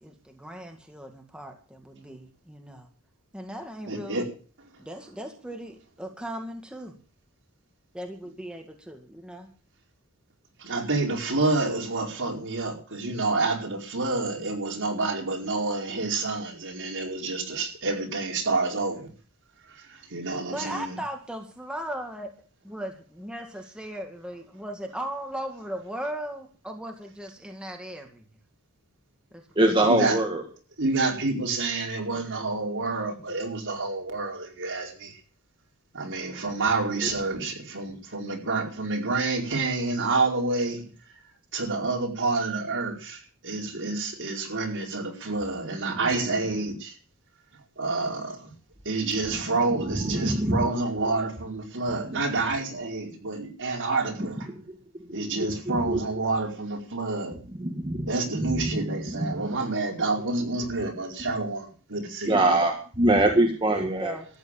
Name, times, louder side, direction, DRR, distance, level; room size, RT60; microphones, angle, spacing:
voice 1, 0.0-2.9 3.3-4.3 4.8-7.0 7.9-9.5 20.5-22.3 22.6-28.2 29.3-29.5 32.1-32.4 62.3-62.7 63.2-63.3 63.7-64.3, right 1 dB, 5° right, 2.1 m, -37 dB
voice 2, 3.9-4.2 10.6-19.1 19.7-21.0 29.8-30.2 30.8-35.2 35.9-40.8 41.5-47.0 47.8-48.5 48.8-54.4 55.1-57.3 58.1-62.6, right 3 dB, 60° right, 4.8 m, -28 dB
voice 3, 29.6-30.4 37.0-37.1 49.7-50.6 52.1-52.2 54.2-54.6 55.2-56.0 57.6-59.4 61.3-61.4 62.3-64.2, right 1 dB, 20° right, 1.9 m, -25 dB
14.0 x 9.7 x 9.0 m
head